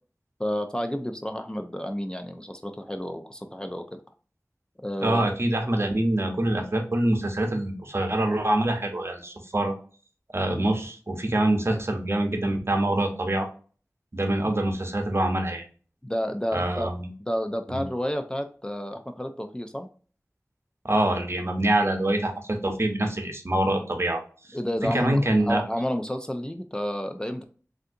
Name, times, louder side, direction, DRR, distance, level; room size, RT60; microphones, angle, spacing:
voice 1, 0.4-4.0 4.8-5.3 16.0-16.9 17.3-19.9 24.5-27.4, equal, 15° left, 6 dB, 0.4 m, -30 dB
voice 2, 5.0-9.7 10.3-13.5 14.1-15.6 16.5-17.1 17.7-17.8 20.8-24.2 24.9-25.6, right 1 dB, 50° right, 4 dB, 0.8 m, -25 dB
3.3 x 2.6 x 2.6 m, 0.40 s
wide cardioid pair, 45°, 6 cm